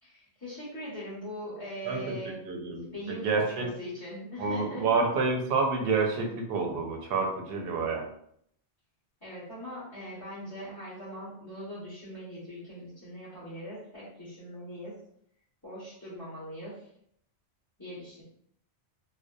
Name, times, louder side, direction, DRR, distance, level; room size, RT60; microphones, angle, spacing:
voice 1, 0.0-2.5 2.9-5.0 9.2-15.0 15.6-16.9 17.8-18.2, equal, 20° left, -13 dB, 0.9 m, -41 dB
voice 2, 1.8-2.2 2.4-3.7 4.4-8.1, right 4 dB, 70° right, 2 dB, 0.8 m, -28 dB
2.6 x 2.1 x 2.2 m, 0.69 s
omnidirectional pair, 1.1 m